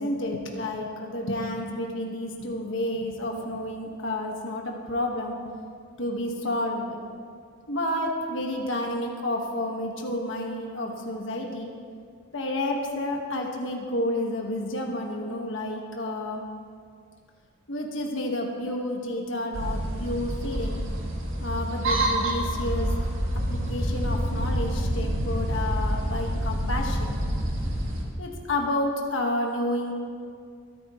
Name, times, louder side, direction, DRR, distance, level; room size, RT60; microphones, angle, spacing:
voice 1, 0.0-5.4 6.0-7.0 7.7-11.7 12.3-16.4 17.7-20.8 21.4-22.9 23.5-27.2 28.2-29.9, left 1 dB, 65° left, 0 dB, 1.5 m, -30 dB
sound 1, 19.5-28.0, equal, 70° right, 2.1 m, -27 dB
23.5 x 9.6 x 3.1 m, 2.2 s
head